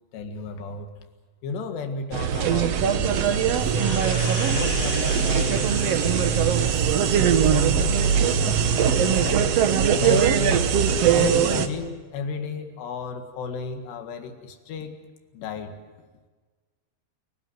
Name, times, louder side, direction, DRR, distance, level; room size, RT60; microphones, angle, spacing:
voice 1, 0.1-0.9 1.4-4.1 4.5-7.1 7.4-9.5 10.0-10.7 11.1-15.0 15.3-15.8, left 4 dB, 90° left, 6 dB, 4.0 m, -34 dB
sound 1, 2.1-11.7, right 7 dB, 80° right, 1.4 m, -21 dB
sound 2, 3.7-7.1 7.6-7.7, left 10 dB, 65° left, 2.4 m, -38 dB
29.5 x 18.5 x 7.8 m, 1.4 s
omnidirectional pair, 4.7 m